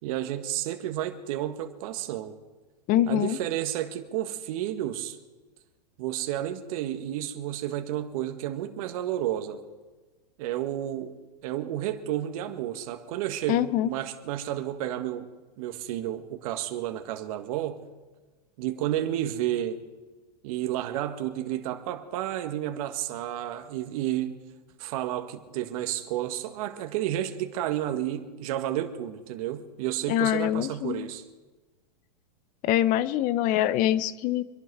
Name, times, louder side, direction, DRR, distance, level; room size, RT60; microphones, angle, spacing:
voice 1, 0.0-2.3 3.1-5.2 6.0-9.6 10.4-11.1 11.4-15.3 15.6-17.8 18.6-19.8 20.4-24.4 24.8-31.2, right 12 dB, 55° right, 6 dB, 1.6 m, -31 dB
voice 2, 2.9-3.4 13.5-13.9 30.1-31.1 32.6-34.4, left 12 dB, 40° left, 17 dB, 0.9 m, -24 dB
25.5 x 11.0 x 4.8 m, 1.2 s
hypercardioid pair, 120°, 21 cm